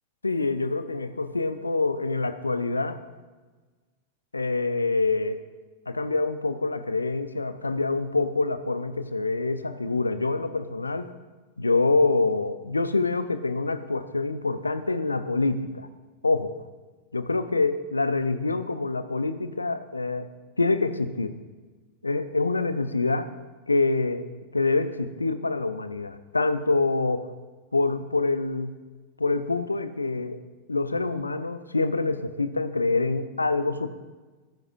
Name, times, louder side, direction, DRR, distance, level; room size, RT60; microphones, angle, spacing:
voice 1, 0.2-3.0 4.3-5.4 5.9-11.1 11.6-15.9 16.2-16.5 17.1-20.3 20.6-21.4 22.0-23.3 23.7-24.3 24.5-27.3 27.7-28.8 29.2-30.4 30.7-33.9, left 3 dB, 80° left, 12 dB, 0.7 m, -26 dB
22.5 x 9.9 x 2.7 m, 1.3 s
figure-of-eight pair, 90°, 0 cm